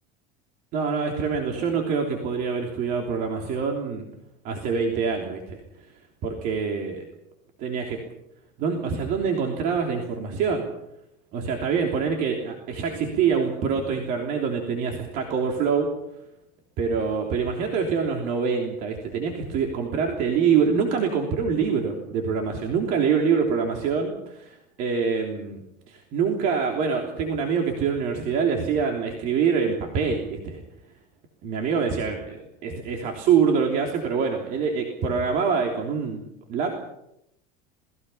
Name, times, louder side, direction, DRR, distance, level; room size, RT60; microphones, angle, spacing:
voice 1, 0.7-4.0 4.4-5.6 6.2-7.0 7.6-8.0 8.6-10.7 11.3-15.9 16.8-25.6 25.9-30.6 31.4-36.2 36.5-36.7, right 6 dB, 45° right, 2 dB, 3.3 m, -25 dB
28.5 x 20.5 x 5.7 m, 0.82 s
cardioid pair, 175°, 20 cm